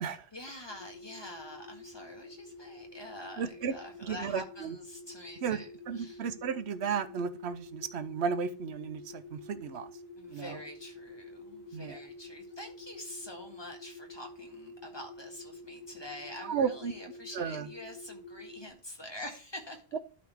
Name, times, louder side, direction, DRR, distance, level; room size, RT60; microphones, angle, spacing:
voice 1, 0.3-5.7 5.9-6.2 10.2-19.8, left 1 dB, 25° left, 2 dB, 1.8 m, -46 dB
sound 1, 0.7-18.7, left 3 dB, 85° left, 1.5 m, -49 dB
voice 2, 3.4-3.7 4.0-4.8 5.4-5.6 5.9-9.9 10.3-10.6 11.7-12.0 16.4-16.9 17.3-17.7 19.9-20.0, right 6 dB, 85° right, 11 dB, 1.0 m, -34 dB
12.0 x 4.3 x 3.4 m, 0.40 s
omnidirectional pair, 1.1 m